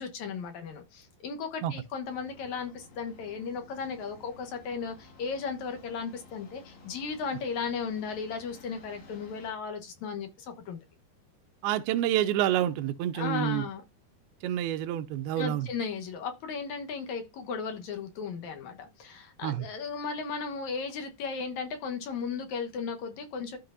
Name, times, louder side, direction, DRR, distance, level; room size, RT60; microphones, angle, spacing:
voice 1, 0.0-10.8 13.1-13.8 15.4-23.6, left 5 dB, 60° left, 2.3 m, -35 dB
sound 1, 2.0-9.5, left 3 dB, 80° left, 5.3 m, -54 dB
voice 2, 11.6-13.6 14.4-15.7 19.4-19.7, right 12 dB, 90° right, 2.5 m, -28 dB
13.0 x 4.7 x 2.5 m
omnidirectional pair, 4.3 m